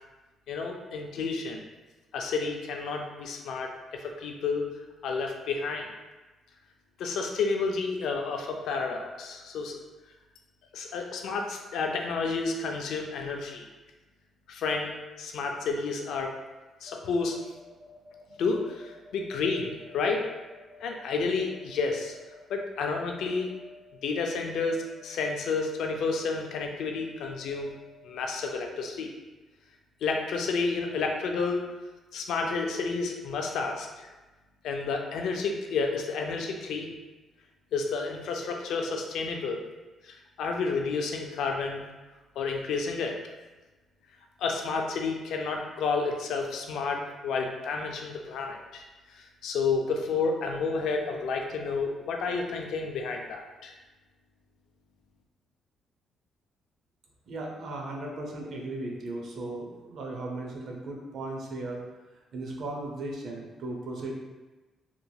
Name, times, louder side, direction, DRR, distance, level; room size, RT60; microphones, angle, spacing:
voice 1, 0.5-1.6 2.1-4.7 5.0-5.9 7.0-9.8 10.7-13.7 14.5-16.3 16.8-17.4 18.4-20.3 20.8-22.2 22.5-23.5 24.0-27.8 28.0-29.1 30.0-31.6 32.1-34.1 34.6-36.9 37.7-39.6 40.0-41.8 42.4-43.2 44.4-48.8 49.1-53.7, left 4 dB, 80° left, 2 dB, 0.4 m, -30 dB
sound 1, 16.9-28.6, left 3 dB, 30° left, 1.1 m, -53 dB
voice 2, 57.3-61.8 62.3-64.1, right 2 dB, 65° right, 0 dB, 0.6 m, -36 dB
2.9 x 2.6 x 2.3 m, 1.2 s
cardioid pair, 90°, 0 cm